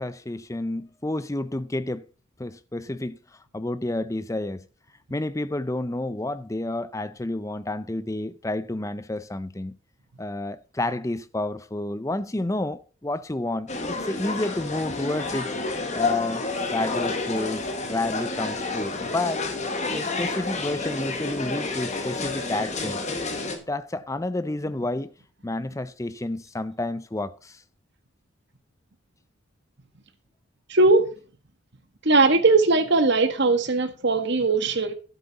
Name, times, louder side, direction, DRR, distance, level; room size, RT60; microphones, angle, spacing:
voice 1, 0.0-2.1 2.4-3.2 3.5-4.7 5.1-9.8 10.2-15.5 15.9-19.5 19.9-23.0 23.7-25.1 25.4-27.6, left 2 dB, 15° left, 0.5 m, -30 dB
sound 1, 13.7-23.6, left 3 dB, 35° left, 1.5 m, -30 dB
voice 2, 30.7-31.0 32.0-34.9, right 3 dB, 50° right, 1.5 m, -19 dB
12.0 x 7.9 x 4.1 m
head